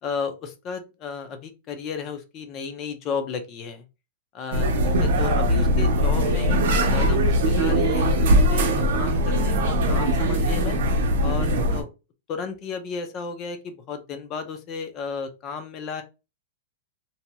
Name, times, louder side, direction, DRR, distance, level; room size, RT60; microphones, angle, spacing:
voice 1, 0.0-3.9 4.3-4.7 5.0-8.1 8.5-10.8 11.2-11.9 12.3-16.0, left 5 dB, 30° left, 8 dB, 0.5 m, -33 dB
sound 1, 4.5-11.8, equal, 65° right, 0.7 m, -21 dB
2.8 x 2.7 x 2.2 m, 0.28 s
supercardioid pair, 160°, 0 cm